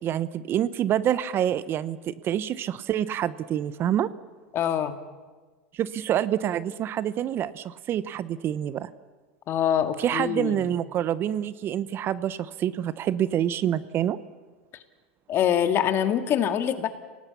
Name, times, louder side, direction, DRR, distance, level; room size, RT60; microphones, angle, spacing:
voice 1, 0.0-4.1 5.7-8.9 10.0-14.2, right 10 dB, 40° right, 16 dB, 0.9 m, -27 dB
voice 2, 4.5-5.0 9.5-10.7 15.3-16.9, left 9 dB, 40° left, 8 dB, 2.0 m, -24 dB
28.5 x 18.5 x 7.1 m, 1.4 s
hypercardioid pair, 100°, 6 cm